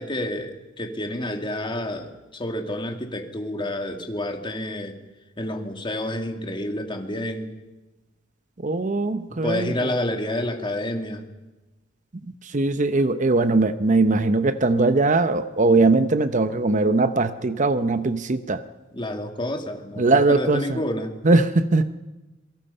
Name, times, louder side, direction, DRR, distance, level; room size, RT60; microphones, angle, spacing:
voice 1, 0.0-5.0 5.4-7.5 9.3-11.3 18.9-21.1, left 1 dB, 25° left, 5 dB, 2.3 m, -29 dB
voice 2, 8.6-9.7 12.5-18.6 20.0-20.8 21.2-21.9, right 3 dB, 40° right, 11 dB, 0.8 m, -20 dB
26.5 x 23.5 x 5.6 m, 1.1 s
head